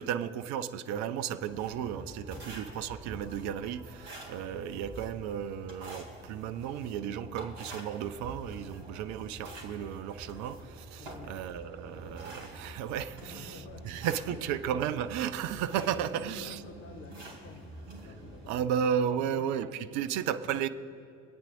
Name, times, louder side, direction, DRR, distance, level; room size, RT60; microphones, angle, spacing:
voice 1, 0.0-16.6 18.5-20.7, right 9 dB, 45° right, 0.6 m, -34 dB
sound 1, 1.5-18.6, right 1 dB, 70° right, 3.1 m, -46 dB
voice 2, 11.0-11.4 13.1-14.7 15.6-18.9 19.1-19.5 20.1-20.3, left 5 dB, 30° left, 0.9 m, -51 dB
26.5 x 8.8 x 2.7 m
figure-of-eight pair, 65°, 39 cm